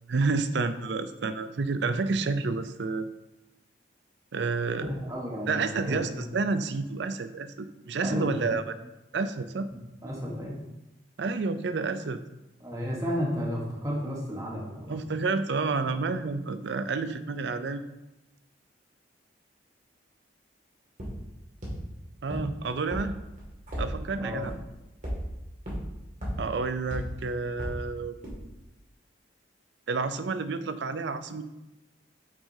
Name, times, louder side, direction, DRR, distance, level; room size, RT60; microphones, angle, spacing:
voice 1, 0.1-3.1 4.3-5.0 5.5-8.7 9.1-9.7 11.2-12.2 14.9-17.8 22.2-23.1 23.8-24.5 26.4-28.2 29.9-31.4, right 4 dB, 65° right, 12 dB, 0.5 m, -29 dB
voice 2, 4.9-6.3 8.0-8.6 9.7-10.6 12.6-15.2 24.2-24.4, equal, 20° right, -3 dB, 1.3 m, -33 dB
sound 1, 21.0-21.1 21.6-21.7 22.3-22.4 22.9-23.0 23.4-23.8 24.4-24.5 25.0-25.1 25.7-25.8 26.2-26.3 26.9-27.0 27.6-27.7 28.2-28.3, equal, 40° right, 2.2 m, -33 dB
8.5 x 6.1 x 2.8 m, 0.99 s
head